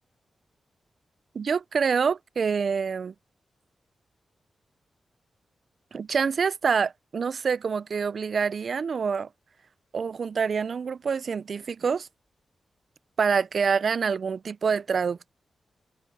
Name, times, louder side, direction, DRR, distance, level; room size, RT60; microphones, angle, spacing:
voice 1, 1.3-3.1 5.9-9.3 9.9-12.1 13.2-15.3, right 6 dB, 50° right, 0.3 m, -26 dB
wide cardioid pair, 155°, 0 cm